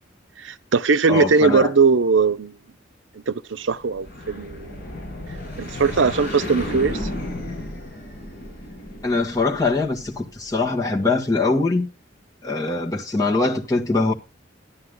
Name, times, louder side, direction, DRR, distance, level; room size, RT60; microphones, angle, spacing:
voice 1, 0.4-2.6 3.3-4.8 5.6-7.1, right 4 dB, 75° right, 0.6 m, -20 dB
voice 2, 1.1-1.7 9.0-11.9 12.4-14.1, left 3 dB, 20° left, 1.8 m, -22 dB
sound 1, 3.8-10.4, left 1 dB, 50° left, 6.6 m, -33 dB
12.0 x 9.7 x 3.8 m
head